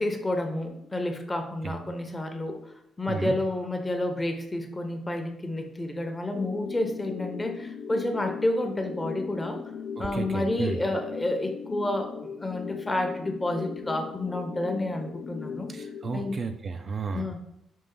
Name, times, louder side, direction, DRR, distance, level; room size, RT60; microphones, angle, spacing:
voice 1, 0.0-9.6 10.0-15.7 16.1-16.4 17.1-17.4, left 1 dB, 15° left, 5 dB, 0.6 m, -30 dB
sound 1, 6.3-16.3, left 6 dB, 55° left, 0.3 m, -38 dB
voice 2, 10.0-10.8 15.7-17.3, right 5 dB, 45° right, 7 dB, 0.4 m, -33 dB
5.4 x 2.4 x 3.7 m, 0.78 s
cardioid pair, 90°, 0 cm